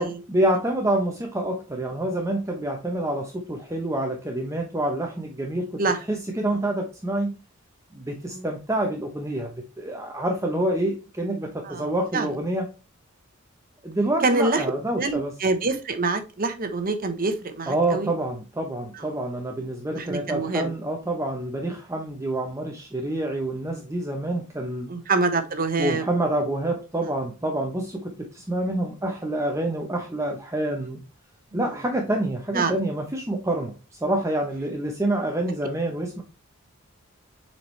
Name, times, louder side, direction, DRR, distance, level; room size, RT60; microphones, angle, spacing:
voice 1, 0.0-5.8 6.1-7.3 7.9-12.7 13.8-15.3 17.7-24.9 25.8-31.0 31.5-33.7 34.0-36.2, right 1 dB, 15° right, 2 dB, 0.8 m, -27 dB
voice 2, 11.6-12.3 14.2-14.6 15.0-18.1 18.9-19.1 19.9-20.7 24.9-26.0 26.3-26.6 31.5-31.7 32.5-32.7, right 3 dB, 45° right, 8 dB, 1.0 m, -26 dB
7.4 x 4.3 x 3.2 m, 0.31 s
head